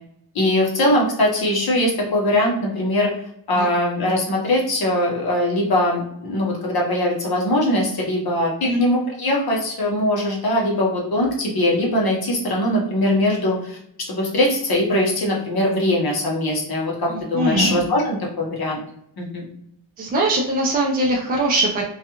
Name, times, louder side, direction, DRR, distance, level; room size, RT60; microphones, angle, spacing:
voice 1, 0.3-3.1 3.5-13.8 14.1-18.8 19.2-19.4, left 1 dB, 55° left, -2 dB, 0.9 m, -21 dB
voice 2, 17.1-17.8 20.0-21.8, right 1 dB, 25° right, -2 dB, 0.3 m, -21 dB
2.4 x 2.3 x 2.8 m, 0.71 s
wide cardioid pair, 165°, 44 cm